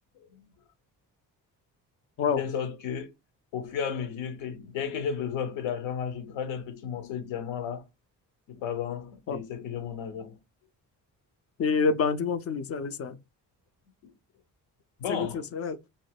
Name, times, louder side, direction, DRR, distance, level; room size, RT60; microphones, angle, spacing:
voice 1, 2.4-3.1 3.5-7.9 8.5-10.4 15.0-15.5, left 7 dB, 65° left, 0.7 m, -33 dB
voice 2, 11.6-13.2 15.1-15.8, left 5 dB, 35° left, 0.4 m, -27 dB
2.5 x 2.0 x 3.3 m
hypercardioid pair, 45°, 48 cm